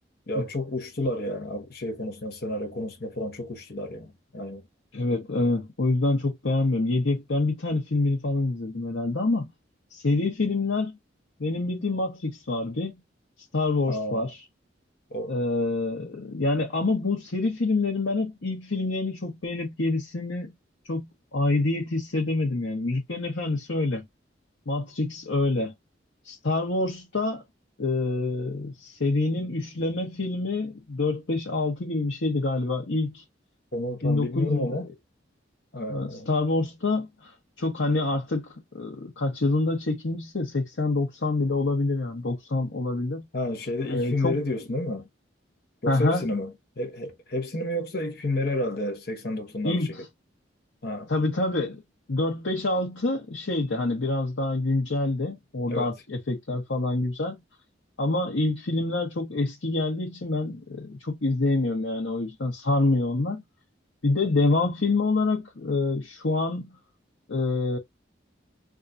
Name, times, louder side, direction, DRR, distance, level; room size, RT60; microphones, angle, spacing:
voice 1, 0.3-4.6 13.9-14.3 15.1-15.3 33.7-34.9 35.7-36.3 43.3-45.0 45.8-46.5 46.8-49.8 50.8-51.1 55.7-55.9, left 1 dB, 55° left, 0.9 m, -30 dB
voice 2, 4.9-9.5 9.9-11.0 11.4-13.0 13.5-14.4 15.3-20.5 20.9-24.1 24.7-25.7 26.2-27.4 27.8-33.2 34.0-34.8 35.9-43.3 43.9-44.4 45.9-46.3 49.6-50.1 51.1-51.8 52.1-57.4 58.0-63.4 64.0-66.7 67.3-67.8, left 2 dB, 85° left, 1.0 m, -26 dB
3.6 x 2.4 x 2.6 m
head